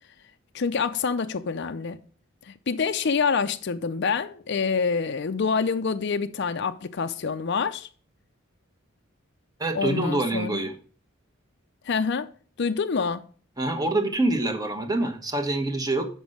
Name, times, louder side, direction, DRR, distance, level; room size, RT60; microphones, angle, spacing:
voice 1, 0.5-2.0 2.5-7.9 9.7-10.6 11.9-12.3 12.6-13.2, left 5 dB, 55° left, 0.5 m, -26 dB
voice 2, 9.6-10.7 13.6-16.1, right 2 dB, 20° right, 1.1 m, -25 dB
7.1 x 5.4 x 6.3 m
head